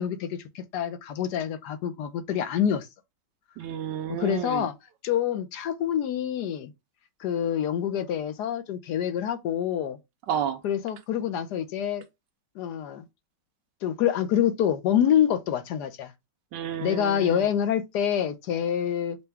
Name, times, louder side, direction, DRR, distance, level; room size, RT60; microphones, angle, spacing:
voice 1, 0.0-2.9 4.2-4.7 5.0-6.7 7.2-10.0 10.6-12.0 12.6-13.0 13.8-16.1 16.8-19.2, left 9 dB, 70° left, 1.2 m, -26 dB
voice 2, 3.6-4.6 10.3-10.6 16.5-17.4, right 9 dB, 80° right, 1.2 m, -31 dB
6.7 x 2.3 x 3.3 m
omnidirectional pair, 1.9 m